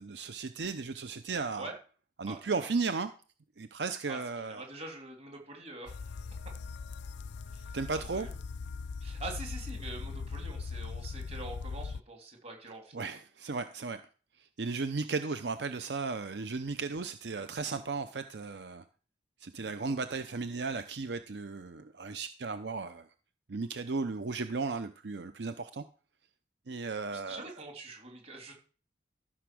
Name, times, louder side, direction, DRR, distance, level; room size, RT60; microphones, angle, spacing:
voice 1, 0.0-1.7 2.2-3.1 3.6-4.6 7.7-8.3 12.9-14.0 14.6-18.8 19.4-23.1 23.5-25.8 26.7-27.5, right 4 dB, 75° right, 10 dB, 0.6 m, -35 dB
voice 2, 2.3-2.7 4.1-5.9 7.5-8.3 9.0-13.1 27.1-28.5, right 2 dB, 35° right, 2 dB, 3.2 m, -45 dB
sound 1, 5.9-12.0, left 4 dB, 85° left, 0.4 m, -40 dB
14.0 x 6.0 x 6.2 m, 0.38 s
head